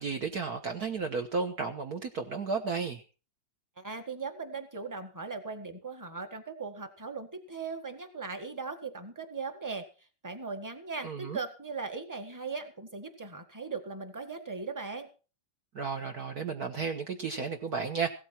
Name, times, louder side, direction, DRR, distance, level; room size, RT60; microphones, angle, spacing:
voice 1, 0.0-3.0 11.0-11.4 15.7-18.1, right 5 dB, 55° right, 4 dB, 1.5 m, -33 dB
voice 2, 3.8-9.8 10.2-15.1, right 4 dB, 10° right, 7 dB, 1.5 m, -39 dB
16.5 x 13.0 x 4.4 m, 0.35 s
omnidirectional pair, 2.2 m